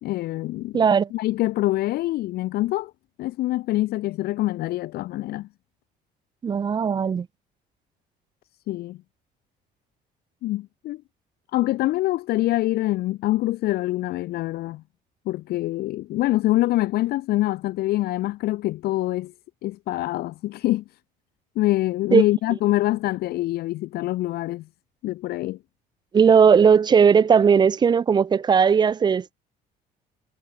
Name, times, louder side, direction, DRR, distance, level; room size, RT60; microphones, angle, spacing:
voice 1, 0.0-0.8 1.1-2.9 3.2-5.5 8.7-9.0 10.4-11.0 11.5-14.8 15.3-19.3 19.6-20.8 21.6-24.7 25.0-25.6, left 16 dB, 70° left, 0.5 m, -25 dB
voice 2, 0.7-1.1 6.4-7.3 22.1-22.2 26.1-29.3, right 6 dB, 25° right, 0.4 m, -17 dB
cardioid pair, 110°, 17 cm